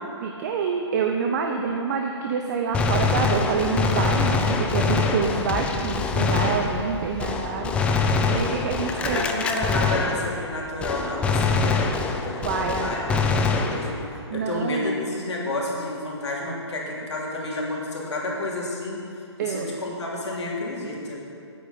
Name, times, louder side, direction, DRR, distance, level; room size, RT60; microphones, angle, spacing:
voice 1, 0.2-7.7 8.0-9.2 12.4-13.2 14.3-14.9 19.4-19.7, right 5 dB, 40° right, 2 dB, 0.8 m, -27 dB
Gunshot gunfire, 2.7-10.5 10.8-14.2, left 4 dB, 10° left, 0.4 m, -24 dB
voice 2, 9.0-13.0 13.3-14.0 14.3-19.0 19.4-21.2, left 2 dB, 75° left, -3 dB, 3.0 m, -30 dB
9.6 x 8.8 x 5.7 m, 2.5 s
hypercardioid pair, 140°, 15 cm